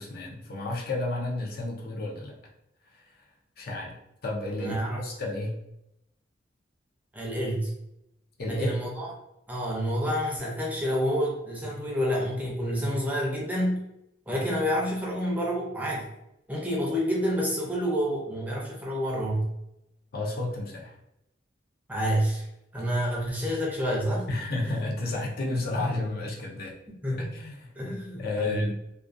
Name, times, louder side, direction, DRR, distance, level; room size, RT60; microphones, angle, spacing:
voice 1, 0.0-2.3 2.9-3.0 3.6-4.0 4.2-5.6 8.4-8.7 20.1-21.0 24.3-26.7 27.2-28.7, left 2 dB, 55° left, -2 dB, 0.5 m, -32 dB
voice 2, 4.6-5.0 7.1-7.7 8.5-9.1 9.5-13.8 14.3-16.1 16.5-19.5 21.9-22.4 22.7-24.2 27.0-27.3 27.8-28.7, equal, 10° right, -3 dB, 0.5 m, -28 dB
2.3 x 2.2 x 2.5 m, 0.85 s
head